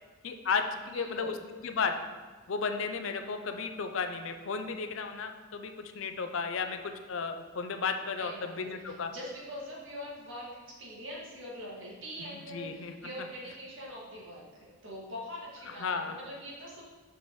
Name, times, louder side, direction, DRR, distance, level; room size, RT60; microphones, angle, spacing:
voice 1, 0.2-1.9 2.5-9.1 12.5-12.9 15.8-16.2, left 5 dB, 65° left, 7 dB, 0.5 m, -34 dB
voice 2, 0.8-1.3 8.2-16.8, equal, 60° right, -5 dB, 2.0 m, -43 dB
6.8 x 6.1 x 3.1 m, 1.5 s
head